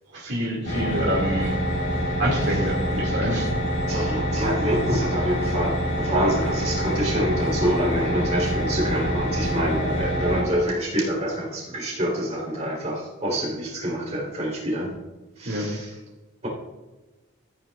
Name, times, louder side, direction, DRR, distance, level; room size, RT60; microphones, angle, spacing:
voice 1, 0.1-1.5 2.2-3.5 15.5-15.7, equal, 55° right, -5 dB, 2.2 m, -26 dB
sound 1, 0.7-10.4, equal, 50° left, 2.4 m, -26 dB
voice 2, 3.9-14.9 15.4-15.9 16.4-16.5, equal, 30° right, -3 dB, 3.5 m, -26 dB
14.5 x 9.2 x 2.4 m, 1.1 s
head